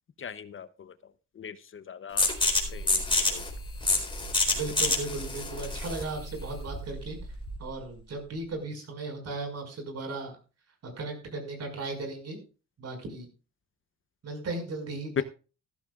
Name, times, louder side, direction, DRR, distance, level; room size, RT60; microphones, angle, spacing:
voice 1, 0.2-0.9 1.4-3.0 3.3-3.4 15.2-15.3, left 7 dB, 45° left, 14 dB, 0.8 m, -37 dB
sound 1, 2.2-7.7, left 2 dB, 15° left, 4.1 m, -28 dB
voice 2, 4.5-7.2 7.6-10.3 11.0-12.4 12.8-13.3 14.2-15.2, right 3 dB, 55° right, 5 dB, 5.6 m, -36 dB
14.5 x 13.5 x 2.4 m, 0.33 s
cardioid pair, 90°, 30 cm